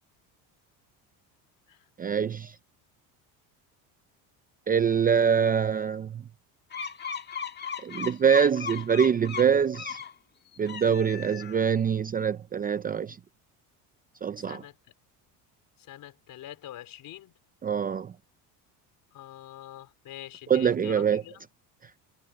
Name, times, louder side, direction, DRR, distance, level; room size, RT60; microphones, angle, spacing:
voice 1, 2.0-2.5 4.7-6.2 7.8-10.0 10.6-13.2 14.2-14.6 17.6-18.1 20.5-21.2, right 7 dB, 20° right, 0.5 m, -24 dB
sound 1, 6.7-10.1 10.6-11.8, left 6 dB, 25° left, 1.7 m, -37 dB
voice 2, 14.4-14.7 15.9-17.3 19.1-21.4, left 13 dB, 50° left, 4.4 m, -44 dB
cardioid pair, 135°, 42 cm